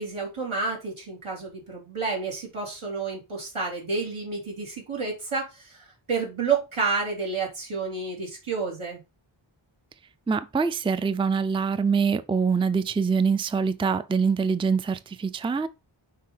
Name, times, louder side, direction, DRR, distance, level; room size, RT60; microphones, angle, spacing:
voice 1, 0.0-9.0, right 4 dB, 85° right, 3.4 m, -30 dB
voice 2, 10.3-15.7, right 5 dB, 10° right, 0.4 m, -24 dB
6.6 x 4.7 x 3.9 m
wide cardioid pair, 60°, 48 cm